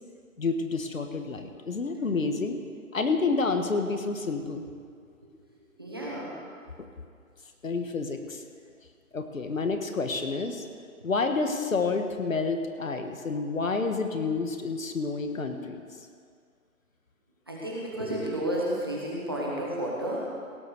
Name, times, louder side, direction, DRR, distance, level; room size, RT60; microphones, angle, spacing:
voice 1, 0.4-2.6 2.9-4.7 6.8-6.9 7.6-8.4 9.1-10.6 11.0-15.8, left 4 dB, 65° left, 6 dB, 1.5 m, -29 dB
voice 2, 5.6-6.4 17.5-20.3, right 1 dB, 15° right, -4 dB, 1.0 m, -32 dB
17.0 x 7.2 x 6.5 m, 2.2 s
hypercardioid pair, 170°, 43 cm